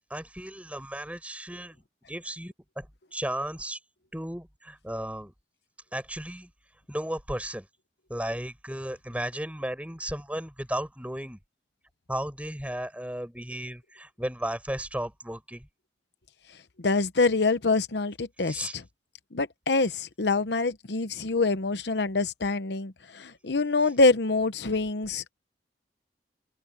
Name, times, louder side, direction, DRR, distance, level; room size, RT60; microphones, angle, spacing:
voice 1, 0.1-2.9 3.1-3.8 4.1-5.3 5.9-6.5 6.9-7.7 8.1-11.4 12.1-15.7 18.4-18.7, right 1 dB, 10° right, 6.8 m, -35 dB
voice 2, 16.8-18.6 19.3-25.3, left 3 dB, 70° left, 0.9 m, -25 dB
open air
head